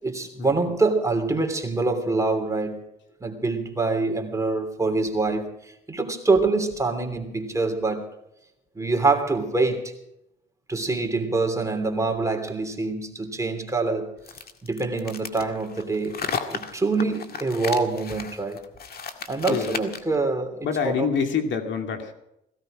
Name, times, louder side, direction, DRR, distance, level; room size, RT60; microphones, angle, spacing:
voice 1, 0.0-2.8 3.2-8.1 8.7-9.9 10.7-14.2 14.6-16.2 16.5-18.6 19.3-20.6 20.8-21.1, right 3 dB, 15° right, 3.0 m, -25 dB
sound 1, 14.2-20.2, left 6 dB, 50° left, 1.9 m, -34 dB
voice 2, 19.5-19.8 20.6-22.1, left 6 dB, 70° left, 2.5 m, -26 dB
16.5 x 16.5 x 5.0 m
cardioid pair, 90°, 20 cm